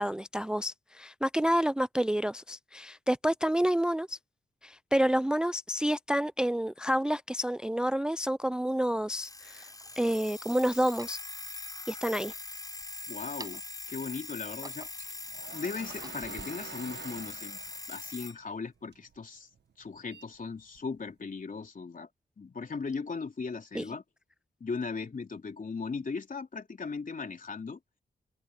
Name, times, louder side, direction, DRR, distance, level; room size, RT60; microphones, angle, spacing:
voice 1, 0.0-4.2 4.6-9.7 10.0-11.2 11.9-12.3 23.7-23.8, equal, 5° right, 0.4 m, -29 dB
sound 1, 8.2-8.3 9.1-10.0 10.7-11.2 12.0-12.9 13.2-13.8 14.3-15.2 15.7-16.5, right 2 dB, 20° right, 7.4 m, -50 dB
Alarm, 9.1-18.4, left 3 dB, 20° left, 7.2 m, -42 dB
voice 2, 13.1-13.6 13.9-15.1 15.5-17.6 17.9-19.5 19.8-22.1 22.4-24.0 24.6-27.8, left 4 dB, 50° left, 3.4 m, -38 dB
sound 2, 14.6-19.2 19.5-21.1, right 7 dB, 75° right, 1.2 m, -48 dB
open air
cardioid pair, 60°, 18 cm